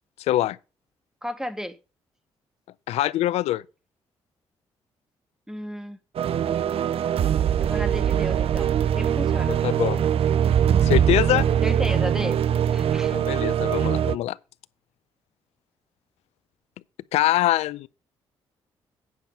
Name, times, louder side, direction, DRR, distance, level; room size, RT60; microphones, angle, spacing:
voice 1, 0.3-0.6 2.9-3.6 9.6-10.1 10.8-11.5 13.1-14.4 17.1-17.9, left 14 dB, 80° left, 0.5 m, -23 dB
voice 2, 1.2-1.8 5.5-6.0 7.6-9.6 11.6-12.4 12.7-13.2, equal, 5° right, 1.3 m, -33 dB
sound 1, 6.2-14.2, right 9 dB, 65° right, 0.6 m, -22 dB
9.4 x 5.8 x 5.2 m
supercardioid pair, 60°, 11 cm